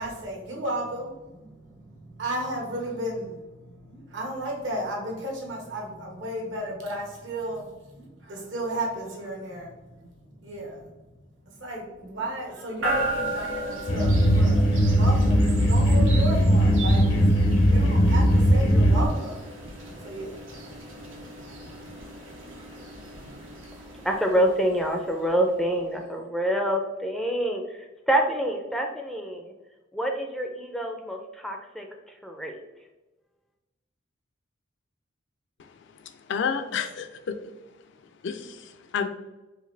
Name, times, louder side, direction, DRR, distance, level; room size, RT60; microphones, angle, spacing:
voice 1, 0.0-10.9 11.6-21.9, right 1 dB, 70° right, -1 dB, 1.3 m, -34 dB
sound 1, 12.8-25.8, right 1 dB, 85° right, 1.0 m, -36 dB
sound 2, 13.9-19.1, equal, 80° left, 0.8 m, -19 dB
voice 2, 24.0-27.6 28.1-29.4 29.9-31.9 32.2-32.5, right 1 dB, ahead, 2 dB, 0.4 m, -26 dB
voice 3, 36.0-37.4 38.2-39.1, left 6 dB, 65° left, 8 dB, 0.4 m, -30 dB
4.8 x 2.6 x 3.2 m, 1.1 s
head